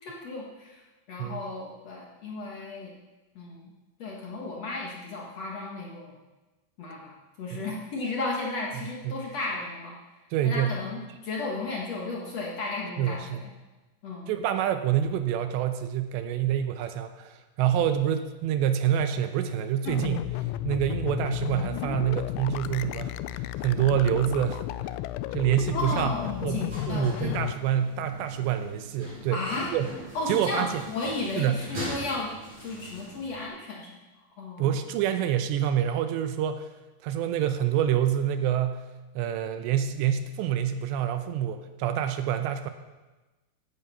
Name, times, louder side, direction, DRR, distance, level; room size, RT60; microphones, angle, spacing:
voice 1, 0.0-0.8 1.1-2.9 3.3-3.7 4.0-6.1 6.8-10.0 10.4-13.5 14.0-14.3 25.7-27.3 29.3-29.7 30.1-32.3 32.6-34.0 34.4-34.7, left 3 dB, 60° left, -2 dB, 1.7 m, -34 dB
voice 2, 10.3-10.8 13.0-13.4 14.3-24.7 25.3-26.1 26.4-29.4 29.7-29.9 30.3-30.8 31.4-31.7 34.6-36.7 37.0-38.9 39.2-42.7, right 10 dB, 80° right, 9 dB, 2.9 m, -27 dB
sound 1, 19.9-27.5, left 14 dB, 85° left, 2.9 m, -33 dB
sound 2, 25.6-33.5, equal, 25° right, 6.3 m, -42 dB
15.5 x 9.9 x 5.7 m, 1.1 s
omnidirectional pair, 5.3 m